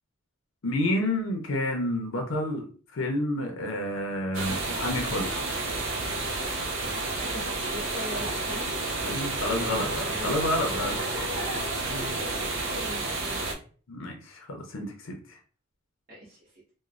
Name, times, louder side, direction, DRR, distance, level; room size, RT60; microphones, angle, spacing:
voice 1, 0.6-2.7 2.9-5.4 9.0-11.0 11.9-12.1 13.9-15.4, left 1 dB, 75° left, 3 dB, 0.6 m, -29 dB
sound 1, 4.3-13.5, right 2 dB, 70° right, 0.6 m, -31 dB
voice 2, 7.2-9.0 10.1-13.5 16.1-16.6, equal, 45° right, -8 dB, 0.9 m, -41 dB
3.0 x 2.1 x 2.4 m, 0.40 s
head